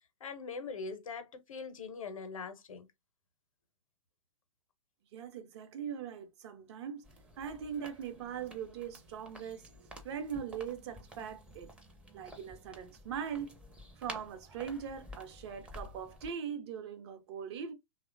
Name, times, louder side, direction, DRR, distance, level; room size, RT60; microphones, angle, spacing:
voice 1, 0.2-2.9, left 4 dB, 75° left, 0.6 m, -42 dB
voice 2, 5.1-7.1 7.4-9.7 10.0-11.7 12.1-13.6 14.0-17.7, right 7 dB, 50° right, 0.6 m, -41 dB
sound 1, 7.0-16.3, equal, 5° right, 0.5 m, -51 dB
2.9 x 2.1 x 2.4 m
figure-of-eight pair, 105°, 17 cm